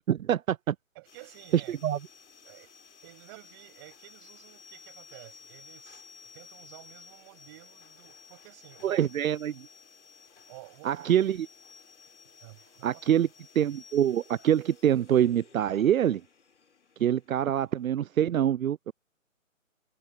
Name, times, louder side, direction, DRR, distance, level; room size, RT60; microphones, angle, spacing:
voice 1, 0.0-0.7 1.7-2.0 8.8-9.5 10.8-11.5 12.8-13.3 13.6-16.2 17.0-18.9, right 10 dB, 80° right, 0.5 m, -25 dB
voice 2, 0.9-1.8 2.4-2.7 3.0-9.0 10.5-11.5 12.4-13.1, right 24 dB, 20° right, 7.6 m, -51 dB
sound 1, 1.0-18.3, left 6 dB, 60° left, 3.8 m, -55 dB
hypercardioid pair, 165°, 40 cm